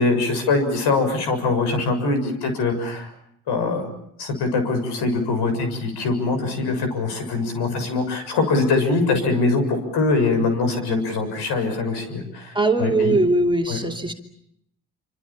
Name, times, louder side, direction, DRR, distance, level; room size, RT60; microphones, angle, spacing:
voice 1, 0.0-3.1 3.5-3.9 4.2-12.5 12.8-13.1 13.7-13.8, left 3 dB, 65° left, 7 dB, 7.1 m, -22 dB
voice 2, 12.5-14.1, right 2 dB, 10° right, 2 dB, 3.0 m, -20 dB
27.5 x 26.0 x 7.3 m, 0.74 s
hypercardioid pair, 70°, 44 cm